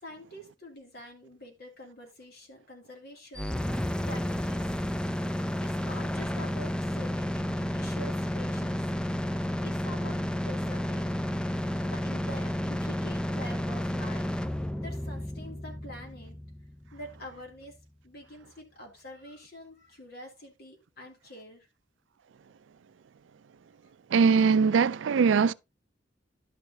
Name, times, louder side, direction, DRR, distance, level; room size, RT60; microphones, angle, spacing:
voice 1, 0.0-3.7 4.1-4.7 5.6-8.9 9.6-11.1 11.5-14.3 14.7-16.4 16.9-17.8 18.0-21.7, left 1 dB, 60° left, 3.1 m, -46 dB
sound 1, 3.3-17.3, left 1 dB, 5° left, 0.4 m, -31 dB
voice 2, 24.1-25.5, right 5 dB, 80° right, 0.4 m, -21 dB
11.5 x 6.3 x 2.9 m
head